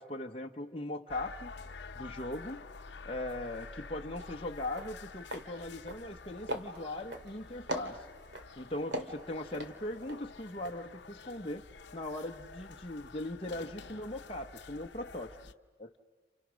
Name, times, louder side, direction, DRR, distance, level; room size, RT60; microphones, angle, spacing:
voice 1, 0.0-1.5 1.9-2.7 3.0-8.0 8.6-11.6 11.9-15.3 15.8-15.9, left 1 dB, 30° left, 2 dB, 0.9 m, -39 dB
sound 1, 1.1-15.5, left 4 dB, 70° left, 0.9 m, -49 dB
sound 2, 4.2-4.3 4.6-4.9 5.3-5.5 5.8-6.2 6.5-7.3 7.7-8.5 8.9-10.2 10.5-10.7, equal, 70° right, 2.3 m, -38 dB
30.0 x 29.0 x 6.3 m, 1.5 s
head